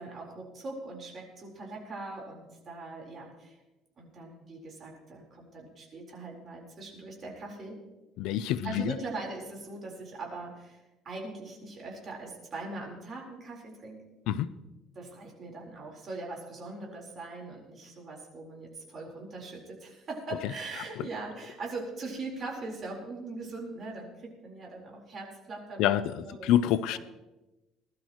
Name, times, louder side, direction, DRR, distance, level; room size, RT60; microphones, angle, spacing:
voice 1, 0.0-3.6 4.0-7.7 8.6-14.0 14.9-26.5 26.9-27.0, right 3 dB, 35° right, -1 dB, 4.2 m, -41 dB
voice 2, 8.2-9.0 14.3-14.5 21.0-21.1 25.8-27.0, left 11 dB, 75° left, 14 dB, 0.6 m, -27 dB
21.0 x 12.5 x 3.1 m, 1.0 s
cardioid pair, 145°, 0 cm